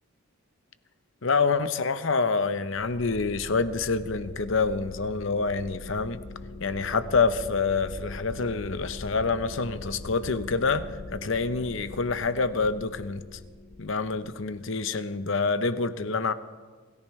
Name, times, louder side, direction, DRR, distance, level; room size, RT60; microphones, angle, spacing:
voice 1, 1.2-6.2 6.6-13.4 13.8-16.3, left 4 dB, 60° left, 0.8 m, -27 dB
sound 1, 2.7-15.0, left 2 dB, 80° left, 1.0 m, -42 dB
27.0 x 14.5 x 3.2 m
head